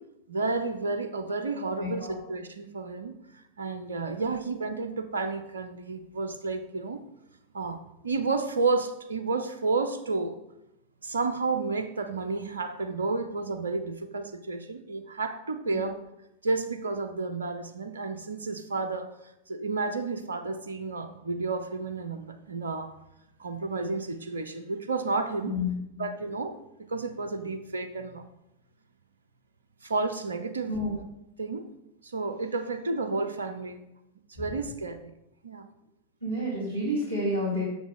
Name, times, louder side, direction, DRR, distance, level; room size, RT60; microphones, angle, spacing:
voice 1, 0.3-3.2 3.6-7.0 7.5-7.8 8.0-10.4 11.0-16.0 16.4-19.1 19.5-22.9 23.4-25.5 26.0-26.5 26.9-28.3 29.8-30.8 31.4-31.7 32.0-33.8 34.3-35.1 35.4-35.7, right 3 dB, 70° right, 8 dB, 0.6 m, -31 dB
voice 2, 1.8-2.1 15.7-15.8 25.4-26.0 30.7-30.9 36.2-37.6, left 1 dB, 90° left, -8 dB, 2.3 m, -30 dB
7.1 x 6.8 x 3.7 m, 0.84 s
figure-of-eight pair, 90°, 0 cm